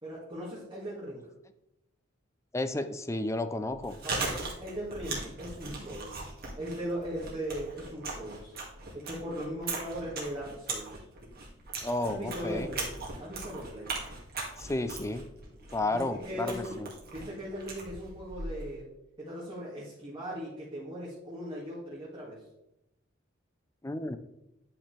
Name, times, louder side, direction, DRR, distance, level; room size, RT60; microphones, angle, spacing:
voice 1, 0.0-1.2 4.0-6.3 6.6-8.6 8.9-11.0 12.0-12.9 13.2-13.9 15.8-16.8 17.1-18.9 19.2-22.4, equal, 25° right, -7 dB, 2.2 m, -39 dB
voice 2, 2.5-4.0 11.8-12.7 14.6-15.2 15.7-16.9 23.8-24.2, left 2 dB, 15° left, 10 dB, 0.5 m, -32 dB
Chewing mastication, 3.6-18.7, right 3 dB, 50° right, 2.2 m, -39 dB
10.0 x 5.7 x 3.3 m, 0.87 s
head